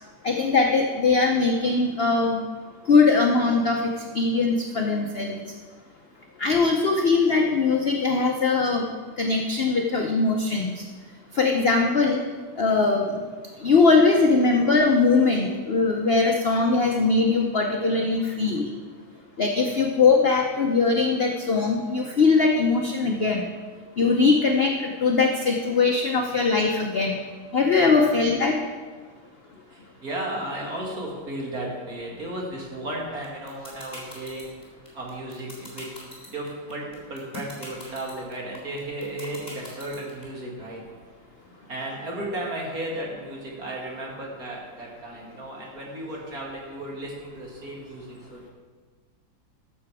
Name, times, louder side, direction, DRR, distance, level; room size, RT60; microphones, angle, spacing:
voice 1, 0.2-2.4 2.9-3.8 4.1-5.4 6.4-8.8 9.2-10.8 11.3-12.2 12.6-13.2 13.6-18.7 19.4-23.4 24.0-27.2 27.5-28.6, left 4 dB, 55° left, 1 dB, 0.7 m, -21 dB
voice 2, 27.7-28.2 29.7-34.6 34.9-36.0 36.3-40.9 41.7-48.5, right 1 dB, 50° right, -2 dB, 2.5 m, -34 dB
sound 1, 33.2-40.2, left 1 dB, 10° left, 3.5 m, -40 dB
14.5 x 6.8 x 4.8 m, 1.5 s
omnidirectional pair, 2.1 m